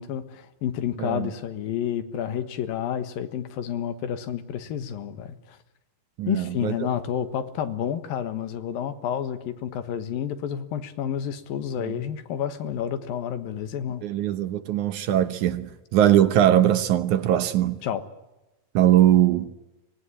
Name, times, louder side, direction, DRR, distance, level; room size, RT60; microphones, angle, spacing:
voice 1, 0.0-5.6 6.3-14.1 17.8-18.1, left 9 dB, 85° left, 3.2 m, -30 dB
voice 2, 6.2-6.7 11.8-11.9 14.0-17.8 18.7-19.5, right 12 dB, 70° right, 2.2 m, -21 dB
24.0 x 19.5 x 9.8 m
omnidirectional pair, 4.0 m